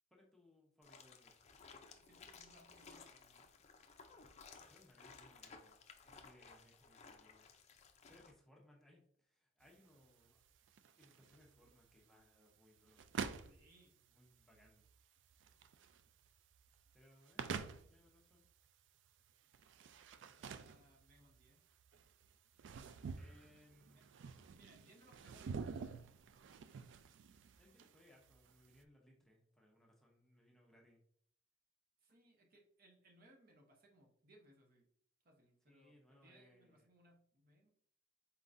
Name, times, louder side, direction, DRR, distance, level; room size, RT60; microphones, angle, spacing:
voice 1, 0.1-1.3 4.7-5.8 6.2-7.5 8.1-10.4 11.0-13.4 14.1-14.9 16.9-18.4 23.1-24.0 27.6-31.0 35.7-36.9, left 1 dB, ahead, -2 dB, 0.7 m, -67 dB
sound 1, 0.8-8.3, left 5 dB, 35° left, 0.4 m, -59 dB
voice 2, 1.9-3.5 6.0-6.2 13.5-14.0 20.1-21.7 23.9-24.0 24.5-26.1 32.0-34.9 35.2-37.7, right 1 dB, 50° right, 1 dB, 0.8 m, -67 dB
sound 2, 9.6-28.8, right 5 dB, 65° right, 0.3 m, -49 dB
4.3 x 3.7 x 2.5 m, 0.64 s
head